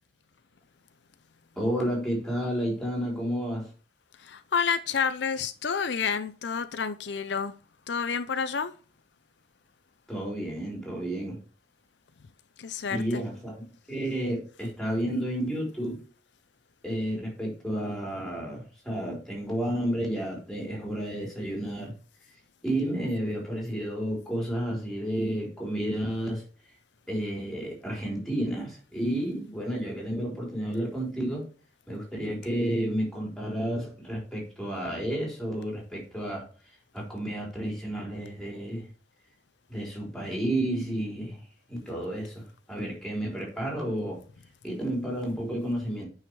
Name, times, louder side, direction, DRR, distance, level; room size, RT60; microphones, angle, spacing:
voice 1, 1.6-3.7 10.1-11.4 12.9-16.0 16.8-21.9 22.6-26.4 27.1-31.5 31.9-36.5 36.9-38.9 39.7-44.2 44.6-46.1, right 1 dB, ahead, 4.0 m, -31 dB
voice 2, 4.2-7.5 7.9-8.7 12.6-13.2, left 6 dB, 70° left, 0.5 m, -29 dB
9.2 x 5.6 x 3.2 m
head